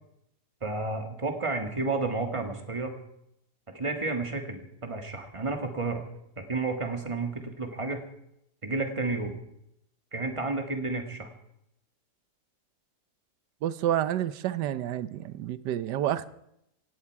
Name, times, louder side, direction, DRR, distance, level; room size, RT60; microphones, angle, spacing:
voice 1, 0.6-3.0 3.7-6.0 6.4-8.0 8.6-9.3 10.1-11.3, right 3 dB, 20° right, 1.9 m, -31 dB
voice 2, 13.6-16.3, right 11 dB, 90° right, 1.4 m, -29 dB
17.0 x 17.0 x 4.7 m
omnidirectional pair, 1.8 m